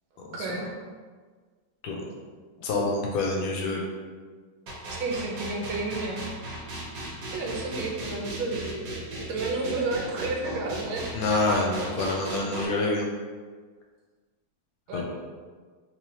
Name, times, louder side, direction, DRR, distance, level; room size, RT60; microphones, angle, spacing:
voice 1, 0.3-0.7 5.0-6.3 7.3-11.2 14.9-15.0, right 3 dB, 85° right, 0 dB, 1.5 m, -31 dB
voice 2, 2.6-3.8 11.1-13.0 14.9-15.0, left 2 dB, 80° left, -1 dB, 1.5 m, -27 dB
sound 1, 4.7-12.7, right 2 dB, 65° right, 1.2 m, -36 dB
3.7 x 3.1 x 2.7 m, 1.5 s
omnidirectional pair, 2.2 m